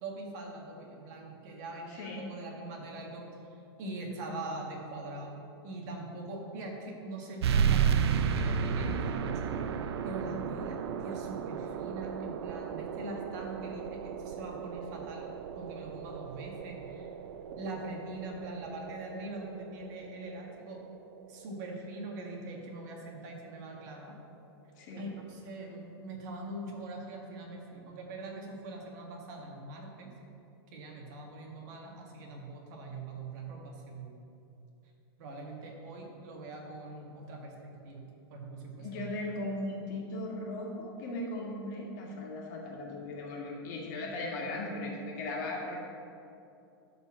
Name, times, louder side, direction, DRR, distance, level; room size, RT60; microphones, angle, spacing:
voice 1, 0.0-3.3 3.8-5.4 5.6-9.6 10.0-15.3 15.5-17.1 17.6-20.8 21.3-24.1 24.9-30.1 30.7-34.2 35.2-39.1 44.4-44.6, right 2 dB, 45° right, 0 dB, 1.6 m, -42 dB
voice 2, 1.9-2.2 24.8-25.1 38.8-45.8, left 2 dB, 45° left, -2 dB, 1.9 m, -38 dB
sound 1, 7.4-22.5, right 7 dB, 85° right, 0.5 m, -34 dB
12.0 x 4.4 x 6.0 m, 2.7 s
supercardioid pair, 160°, 13 cm